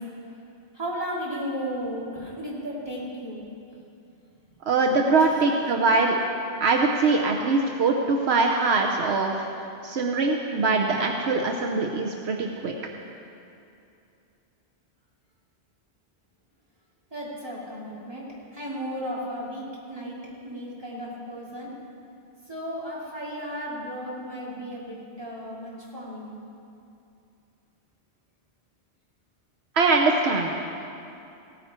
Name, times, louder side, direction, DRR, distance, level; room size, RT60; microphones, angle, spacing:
voice 1, 0.7-3.4 5.2-5.5 17.1-20.2 20.4-21.7 22.5-26.3, equal, 25° right, -7 dB, 2.8 m, -34 dB
voice 2, 4.7-6.1 6.6-9.5 9.8-12.7 29.8-30.6, right 3 dB, 75° right, 1 dB, 1.0 m, -22 dB
16.5 x 9.3 x 4.3 m, 2.6 s
omnidirectional pair, 1.1 m